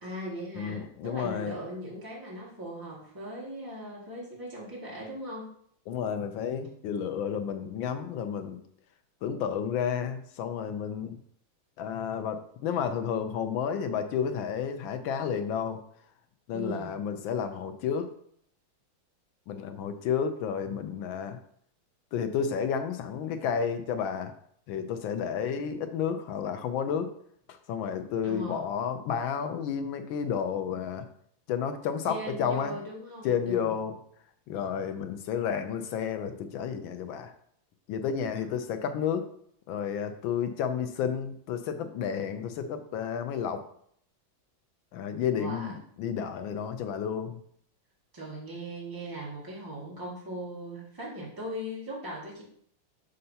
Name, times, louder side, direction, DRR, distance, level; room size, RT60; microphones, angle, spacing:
voice 1, 0.0-5.5 16.5-17.0 28.2-28.7 32.1-33.7 45.4-45.7 48.1-52.4, equal, 10° right, -5 dB, 1.7 m, -39 dB
voice 2, 0.5-1.6 5.9-8.6 9.2-11.2 11.8-15.8 16.5-18.1 19.5-21.4 22.1-24.3 24.7-27.1 27.5-31.1 31.5-32.8 33.2-34.0 34.5-37.3 37.9-39.3 39.7-43.6 44.9-47.4, left 7 dB, 75° left, 8 dB, 1.3 m, -31 dB
6.7 x 6.5 x 2.7 m, 0.65 s
omnidirectional pair, 2.2 m